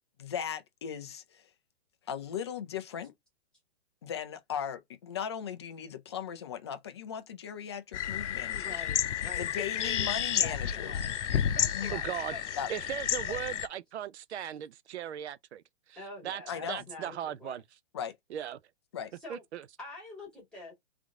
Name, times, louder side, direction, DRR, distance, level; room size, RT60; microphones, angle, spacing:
voice 1, 0.2-1.5 2.1-3.1 4.0-8.7 9.2-10.9 11.7-11.9 12.6-12.7 16.5-16.8 17.9-18.2 18.9-19.1, left 8 dB, 25° left, 0.5 m, -38 dB
sound 1, 7.9-13.7, left 9 dB, 80° left, 0.7 m, -31 dB
voice 2, 8.5-10.1 10.4-11.1 11.5-12.4 13.3-13.4 16.0-17.6 19.2-19.4 19.8-20.7, left 2 dB, ahead, 2.1 m, -46 dB
voice 3, 11.9-12.4 12.7-15.6 15.9-16.4 16.7-17.6 18.3-18.6 19.3-19.6, right 10 dB, 65° right, 0.6 m, -38 dB
3.8 x 3.5 x 3.6 m
hypercardioid pair, 160°, 35 cm